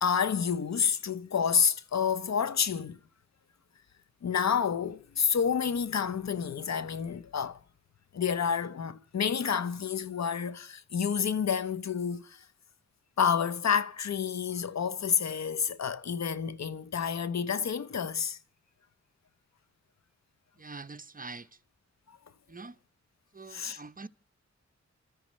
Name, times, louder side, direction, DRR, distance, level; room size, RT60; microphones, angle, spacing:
voice 1, 0.0-3.0 4.2-7.6 8.1-12.5 13.2-18.4 22.1-22.2 23.5-23.8, left 7 dB, 65° left, 0.8 m, -29 dB
voice 2, 20.6-21.6 22.5-22.8 23.3-24.1, right 3 dB, 30° right, 0.7 m, -44 dB
30.0 x 13.0 x 3.2 m
cardioid pair, 55°, 29 cm